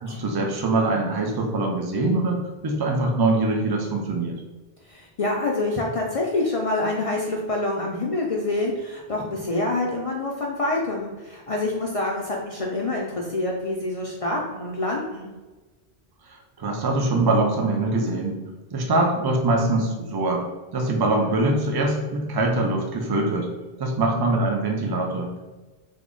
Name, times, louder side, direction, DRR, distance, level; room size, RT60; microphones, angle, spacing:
voice 1, 0.0-4.4 16.6-18.4 18.7-20.5 20.7-23.5 23.8-25.3, right 2 dB, 35° right, 1 dB, 0.4 m, -23 dB
voice 2, 4.9-15.3, left 2 dB, 55° left, -2 dB, 0.4 m, -26 dB
3.5 x 2.0 x 3.7 m, 1.2 s
omnidirectional pair, 1.1 m